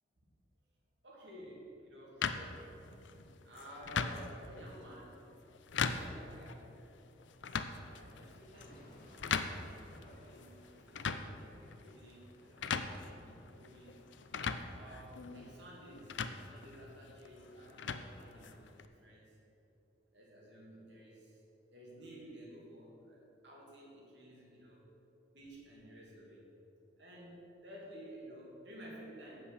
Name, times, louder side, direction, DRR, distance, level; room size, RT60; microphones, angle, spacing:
voice 1, 1.0-2.9 3.4-5.2 5.8-6.7 7.0-7.2 7.7-9.4 9.9-14.1 14.7-19.3 20.1-21.4 21.7-24.9 25.3-26.4 27.0-29.5, right 1 dB, 70° right, -4 dB, 2.7 m, -54 dB
sound 1, 2.2-18.9, left 5 dB, 80° left, 0.6 m, -41 dB
sound 2, 8.5-14.5, left 1 dB, 50° left, 1.5 m, -61 dB
8.5 x 7.6 x 6.8 m, 3.0 s
head